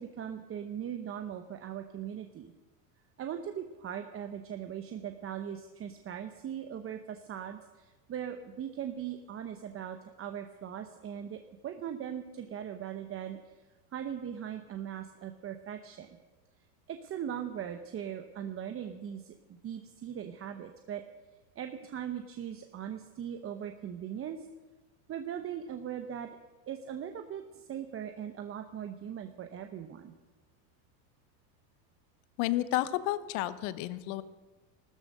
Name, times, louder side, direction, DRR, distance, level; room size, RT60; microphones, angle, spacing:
voice 1, 0.0-2.5 3.2-13.5 13.9-16.1 16.9-21.0 21.5-24.5 25.1-26.3 26.7-30.1, right 9 dB, 30° right, 7 dB, 1.0 m, -40 dB
voice 2, 32.4-34.2, left 15 dB, 65° left, 14 dB, 1.1 m, -31 dB
14.5 x 13.0 x 6.7 m, 1.2 s
supercardioid pair, 130°, 46 cm